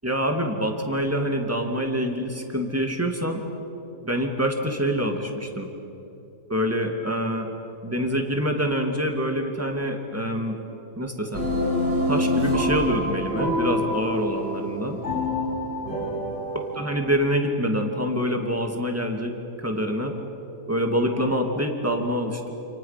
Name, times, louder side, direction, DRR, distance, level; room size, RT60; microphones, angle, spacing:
voice 1, 0.0-3.4 4.0-5.7 6.5-7.5 7.8-10.6 11.0-11.4 12.1-15.0 16.7-20.1 20.7-22.5, equal, 10° right, 3 dB, 2.3 m, -26 dB
sound 1, 11.3-16.8, left 1 dB, 70° right, 5.2 m, -26 dB
29.0 x 28.5 x 5.9 m, 2.9 s
omnidirectional pair, 1.9 m